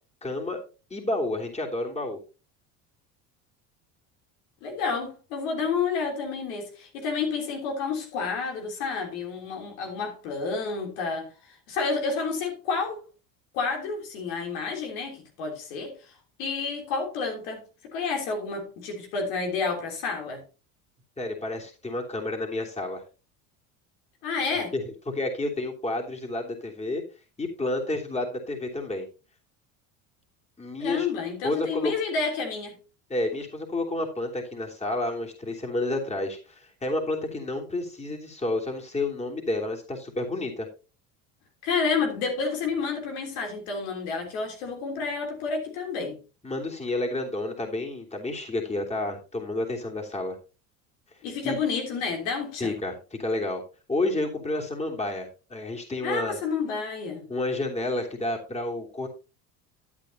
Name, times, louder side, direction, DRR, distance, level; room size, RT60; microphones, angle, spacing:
voice 1, 0.2-0.6 0.9-2.2 21.2-23.0 24.7-27.0 27.4-29.1 30.6-31.1 31.4-31.9 33.1-40.7 46.4-50.4 51.4-51.6 52.6-53.6 53.9-56.4 57.3-59.1, left 2 dB, 15° left, 3.1 m, -30 dB
voice 2, 4.6-11.3 11.7-13.0 13.5-15.9 16.4-17.6 17.9-20.4 24.2-24.7 30.8-32.7 41.6-46.2 51.2-52.7 56.0-57.3, left 4 dB, 80° left, 3.4 m, -30 dB
12.0 x 8.7 x 2.9 m
supercardioid pair, 85°, 42 cm